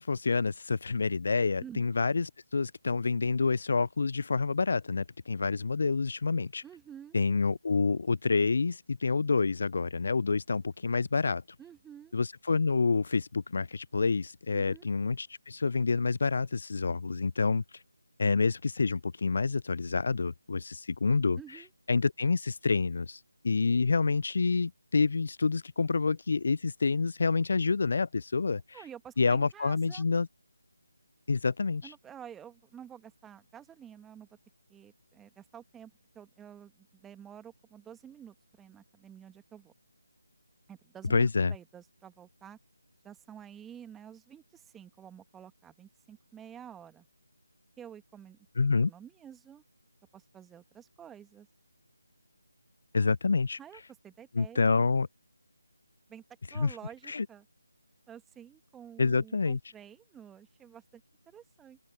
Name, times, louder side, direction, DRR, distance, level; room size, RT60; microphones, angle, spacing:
voice 1, 0.0-6.6 7.1-11.4 12.1-17.8 18.2-21.4 21.9-28.8 29.2-30.3 31.3-31.9 41.1-41.5 48.6-48.9 52.9-53.6 54.3-55.1 56.5-56.7 57.1-57.3 59.0-59.6, left 4 dB, 50° left, 0.4 m, -28 dB
voice 2, 6.6-7.2 11.6-12.1 14.5-14.9 21.3-21.7 28.7-30.0 31.8-34.3 34.7-39.7 40.7-42.6 43.0-47.1 47.8-48.4 48.8-49.6 50.1-51.5 53.6-54.7 56.1-56.2 56.5-57.4 58.1-61.8, right 9 dB, 5° right, 1.8 m, -50 dB
open air
figure-of-eight pair, 155°, 0 cm